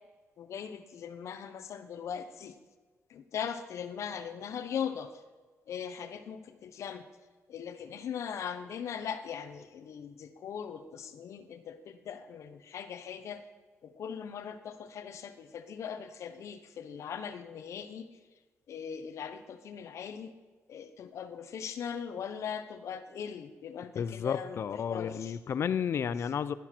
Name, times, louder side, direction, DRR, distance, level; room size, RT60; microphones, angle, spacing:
voice 1, 0.4-2.6 3.1-5.1 5.7-7.0 7.5-13.4 13.8-18.1 18.7-20.3 20.7-25.4, left 7 dB, 75° left, 10 dB, 1.0 m, -40 dB
voice 2, 24.0-26.5, left 7 dB, 55° left, 15 dB, 0.5 m, -32 dB
12.0 x 11.0 x 4.5 m, 1.3 s
cardioid pair, 130°, 5 cm